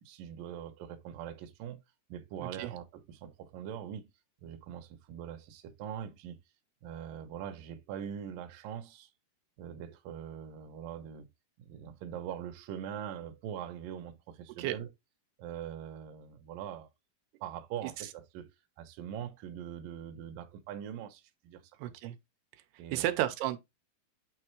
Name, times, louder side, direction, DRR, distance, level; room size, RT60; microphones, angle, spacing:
voice 1, 0.0-1.8 2.1-4.1 4.4-6.4 6.8-9.1 9.6-11.3 11.6-14.9 15.4-16.9 17.4-21.9 22.8-23.2, right 9 dB, 70° right, 2.2 m, -42 dB
voice 2, 2.4-2.7 14.6-14.7 21.8-22.2 22.9-23.6, right 13 dB, 90° right, 2.7 m, -32 dB
8.9 x 3.5 x 3.1 m
omnidirectional pair, 4.7 m